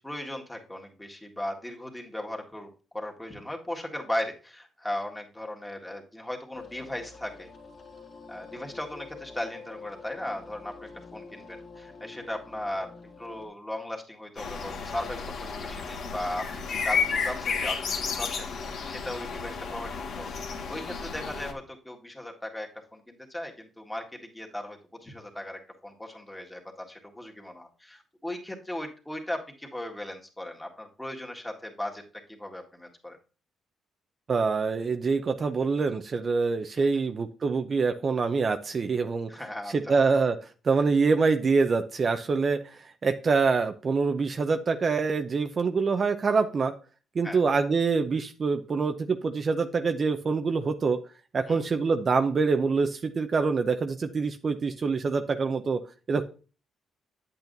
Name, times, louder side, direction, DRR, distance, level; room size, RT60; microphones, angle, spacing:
voice 1, 0.0-7.5 8.3-12.9 13.2-32.0 32.3-33.2 36.8-37.0 39.3-40.0 47.2-47.4 51.5-51.7, left 1 dB, 10° left, 1 dB, 1.8 m, -37 dB
sound 1, 6.5-13.5, left 4 dB, 50° left, 1.7 m, -47 dB
sound 2, 14.4-21.5, left 5 dB, 70° left, 1.5 m, -32 dB
voice 2, 34.3-39.3 39.7-40.3 40.6-46.7 47.1-51.0 51.3-55.8 56.1-56.2, right 4 dB, 40° right, 7 dB, 0.6 m, -25 dB
8.7 x 8.2 x 2.6 m, 0.36 s
cardioid pair, 90°, 0 cm